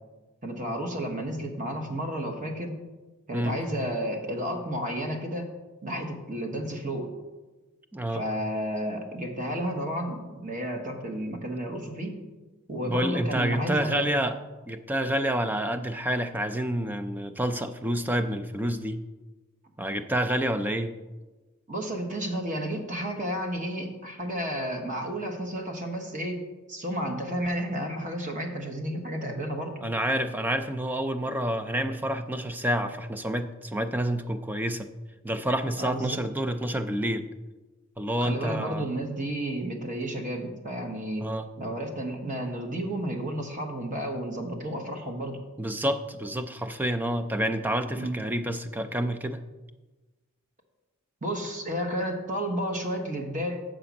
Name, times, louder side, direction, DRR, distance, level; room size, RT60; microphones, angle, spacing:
voice 1, 0.4-2.8 3.3-5.5 5.8-7.1 8.1-12.1 12.7-14.1 21.7-29.8 35.8-36.2 38.2-41.3 41.6-45.4 47.9-48.1 51.2-53.6, equal, 35° right, 4 dB, 1.2 m, -32 dB
voice 2, 7.9-8.2 12.8-14.4 14.7-19.0 19.8-20.9 29.8-34.9 35.2-37.3 38.0-38.9 41.2-41.5 45.6-49.4, right 1 dB, 10° right, 9 dB, 0.3 m, -28 dB
6.8 x 5.1 x 7.0 m, 1.2 s
head